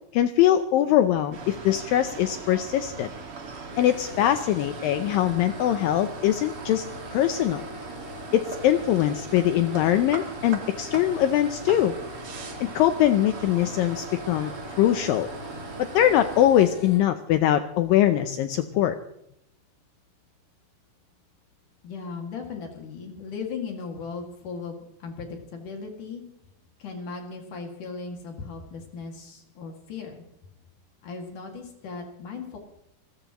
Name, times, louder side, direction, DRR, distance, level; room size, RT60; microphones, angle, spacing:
voice 1, 0.1-3.1 3.8-6.9 7.1-7.6 8.3-11.9 12.6-14.5 14.8-15.3 15.8-19.0, left 12 dB, 80° left, 9 dB, 2.1 m, -22 dB
sound 1, 1.3-16.5, right 4 dB, 45° right, 2.1 m, -39 dB
sound 2, 3.7-17.0, left 2 dB, 25° left, 3.9 m, -43 dB
voice 2, 21.8-26.2 26.8-30.2 31.0-32.6, left 5 dB, 55° left, 2 dB, 3.5 m, -37 dB
28.0 x 14.0 x 3.0 m, 0.77 s
omnidirectional pair, 4.7 m